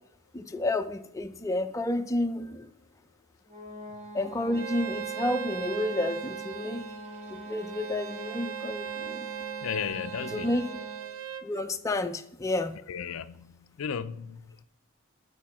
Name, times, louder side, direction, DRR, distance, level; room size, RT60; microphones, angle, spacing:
voice 1, 0.3-2.7 4.1-6.8 7.3-9.3 10.3-10.7 11.4-12.7, left 1 dB, 15° left, 0.5 m, -30 dB
sound 1, 3.5-11.2, right 1 dB, 45° right, 3.9 m, -43 dB
Bowed string instrument, 4.5-11.5, right 9 dB, 90° right, 0.6 m, -39 dB
voice 2, 9.6-10.6 12.9-14.6, left 7 dB, 75° left, 0.4 m, -35 dB
8.7 x 5.1 x 6.0 m
head